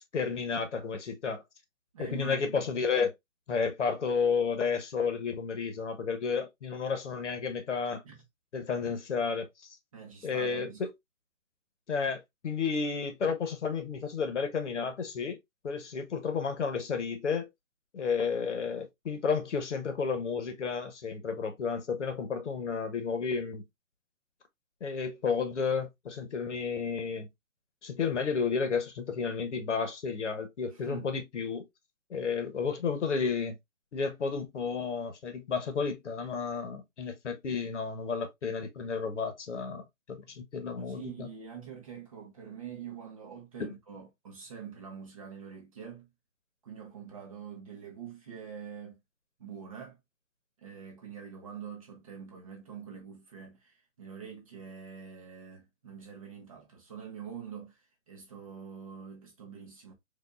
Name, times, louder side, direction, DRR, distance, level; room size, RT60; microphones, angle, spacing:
voice 1, 0.1-1.4 2.0-3.1 3.5-8.0 8.5-9.5 10.2-10.9 11.9-15.4 15.6-17.5 17.9-23.6 24.8-27.3 27.8-31.7 32.1-33.6 33.9-41.3 43.6-43.7, left 5 dB, 60° left, 1.1 m, -32 dB
voice 2, 1.9-2.7 8.0-8.2 9.9-10.8 30.7-31.1 40.8-46.1 46.6-49.0 49.4-50.0 50.6-59.9, right 7 dB, 25° right, 0.9 m, -45 dB
4.5 x 2.6 x 2.4 m
hypercardioid pair, 160°, 41 cm